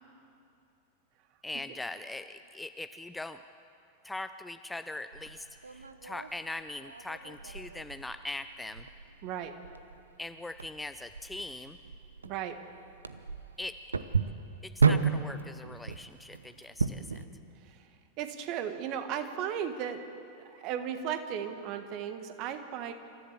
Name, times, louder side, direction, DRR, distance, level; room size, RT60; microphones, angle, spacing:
voice 1, 1.4-3.4 4.0-8.9 10.2-11.8 13.6-13.8 14.6-17.3, left 2 dB, 5° left, 10 dB, 0.6 m, -41 dB
sound 1, 5.1-17.2, right 5 dB, 75° right, 0.8 m, -34 dB
voice 2, 9.2-9.5 12.2-12.6 17.6-17.9 18.2-20.0 20.4-22.9, right 9 dB, 40° right, 8 dB, 1.7 m, -35 dB
27.5 x 14.5 x 7.6 m, 2.6 s
figure-of-eight pair, 90°, 0 cm